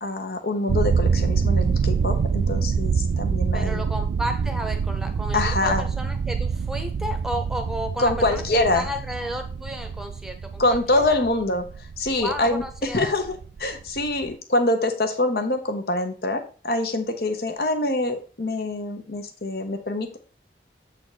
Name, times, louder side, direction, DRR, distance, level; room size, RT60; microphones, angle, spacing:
voice 1, 0.0-3.8 5.3-5.9 8.0-8.9 10.6-20.2, left 2 dB, 60° left, 6 dB, 1.1 m, -25 dB
sound 1, 0.7-14.3, right 5 dB, 80° right, 0.3 m, -26 dB
voice 2, 3.5-11.2 12.2-13.1, equal, 5° right, 5 dB, 0.9 m, -33 dB
7.4 x 4.1 x 5.0 m, 0.38 s
head